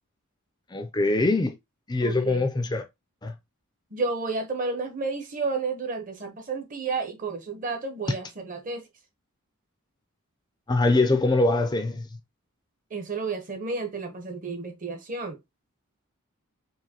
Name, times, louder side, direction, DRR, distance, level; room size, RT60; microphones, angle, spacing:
voice 1, 0.7-1.5 1.9-2.8 3.2-3.3 10.7-12.1, left 2 dB, 20° left, 0.4 m, -23 dB
voice 2, 2.0-2.4 3.9-8.9 12.9-15.4, right 4 dB, 35° right, 0.8 m, -31 dB
4.7 x 2.6 x 2.8 m
head